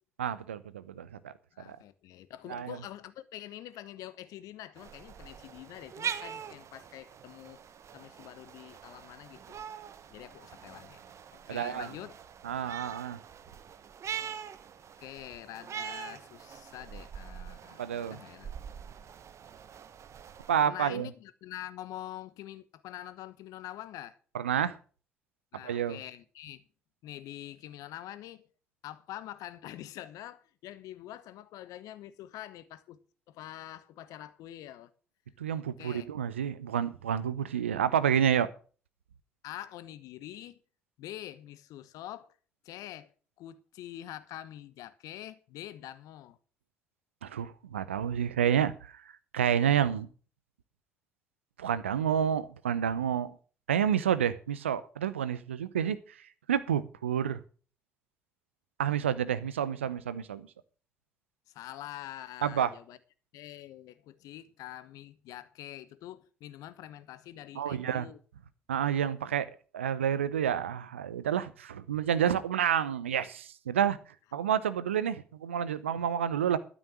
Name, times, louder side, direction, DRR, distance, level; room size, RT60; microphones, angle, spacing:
voice 1, 0.2-1.3 1.7-1.8 2.5-2.8 11.5-11.9 12.4-13.2 17.8-18.2 20.5-21.1 24.3-24.8 25.6-26.0 35.4-38.5 47.2-49.0 49.3-50.1 51.6-53.4 53.7-56.0 56.5-57.4 58.8-60.5 62.4-62.7 67.5-68.1 68.7-69.5 69.7-74.0 74.3-76.6, right 9 dB, 85° right, 0.6 m, -29 dB
voice 2, 1.5-7.6 7.9-9.6 10.1-11.0 11.3-12.2 15.0-18.5 19.0-19.1 20.7-24.2 25.5-26.6 27.0-28.5 28.8-33.0 33.3-34.9 35.8-36.1 39.4-40.6 41.0-42.3 42.6-43.1 43.4-46.4 61.5-63.0 63.3-68.2, left 13 dB, 65° left, 1.0 m, -45 dB
sound 1, 4.8-20.7, right 8 dB, 50° right, 1.1 m, -43 dB
12.5 x 6.2 x 7.5 m
figure-of-eight pair, 45°, 6 cm